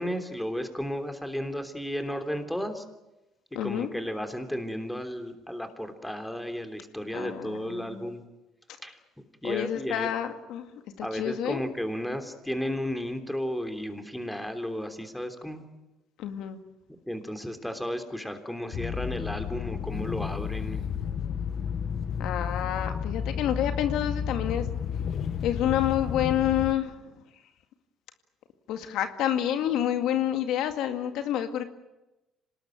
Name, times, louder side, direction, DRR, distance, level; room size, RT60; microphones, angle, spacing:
voice 1, 0.0-2.8 3.6-8.2 8.8-9.0 9.4-10.1 11.0-15.6 17.1-20.8, equal, 5° left, 6 dB, 3.3 m, -33 dB
voice 2, 3.6-3.9 7.1-8.1 9.4-10.7 11.0-11.6 16.2-16.6 22.2-24.7 25.4-27.0 28.7-31.6, left 11 dB, 75° left, 7 dB, 2.0 m, -28 dB
sound 1, 18.7-26.7, left 7 dB, 55° left, 1.1 m, -32 dB
26.0 x 19.5 x 9.1 m, 0.98 s
cardioid pair, 100°, 0 cm